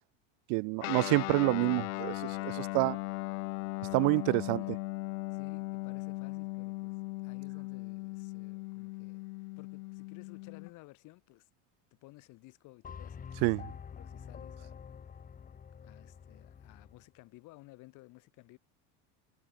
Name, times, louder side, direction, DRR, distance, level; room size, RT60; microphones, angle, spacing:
voice 1, 0.5-3.0 3.9-4.8 13.4-13.6, right 38 dB, 60° right, 0.8 m, -28 dB
Guitar, 0.8-10.7, left 25 dB, 80° left, 1.4 m, -38 dB
voice 2, 4.3-4.7 5.3-11.5 12.0-14.8 15.7-18.6, left 21 dB, 55° left, 4.7 m, -56 dB
sound 1, 12.8-17.1, left 7 dB, 20° left, 4.1 m, -47 dB
cardioid pair, 150°, 37 cm